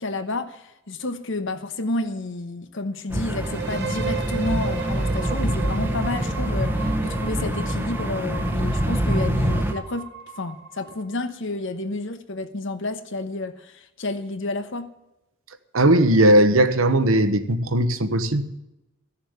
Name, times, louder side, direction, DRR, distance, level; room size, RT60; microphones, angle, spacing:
voice 1, 0.0-10.1 10.4-14.9, left 2 dB, 65° left, 1.1 m, -30 dB
sound 1, 3.1-9.7, equal, 10° right, 1.0 m, -25 dB
sound 2, 3.4-11.2, right 7 dB, 55° right, 1.1 m, -36 dB
voice 2, 15.7-18.4, right 1 dB, 85° right, 1.2 m, -18 dB
14.5 x 7.2 x 8.1 m
head